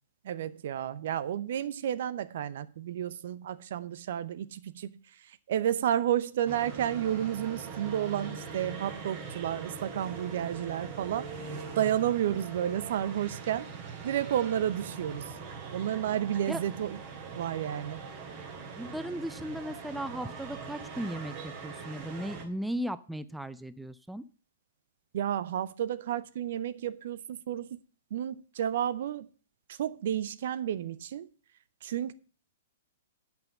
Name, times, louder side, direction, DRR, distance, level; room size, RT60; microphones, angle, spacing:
voice 1, 0.2-4.9 5.2-13.7 14.0-15.3 15.7-17.0 17.4-18.0 25.1-27.7 28.1-29.3 29.7-31.3 31.8-32.1, right 10 dB, 55° right, 0.7 m, -31 dB
sound 1, 6.5-22.5, right 5 dB, 40° right, 2.6 m, -42 dB
voice 2, 18.8-24.2, right 1 dB, 5° right, 0.4 m, -36 dB
8.9 x 5.8 x 7.7 m
figure-of-eight pair, 110°, 0 cm